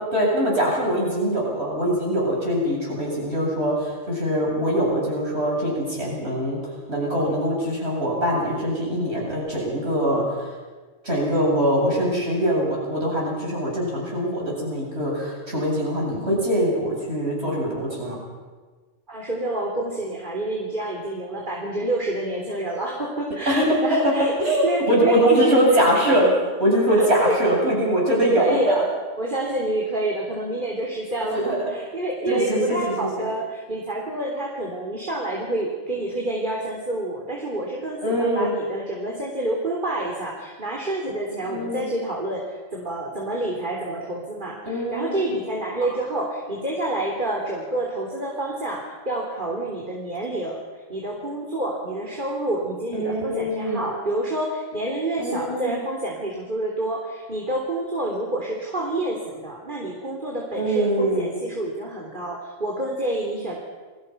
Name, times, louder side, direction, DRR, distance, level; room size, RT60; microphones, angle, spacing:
voice 1, 0.0-6.6 6.9-10.2 11.0-18.2 23.5-23.6 24.4-26.3 26.6-28.8 31.2-31.7 32.3-32.8 38.0-38.6 41.5-41.9 44.6-45.3 52.9-53.8 55.2-55.8 60.6-61.3, right 1 dB, 60° right, -3 dB, 8.6 m, -23 dB
voice 2, 19.1-25.8 26.1-26.2 27.0-27.4 28.2-28.9 29.2-63.5, right 1 dB, 40° right, -1 dB, 3.6 m, -28 dB
30.0 x 22.0 x 5.8 m, 1.4 s
omnidirectional pair, 1.3 m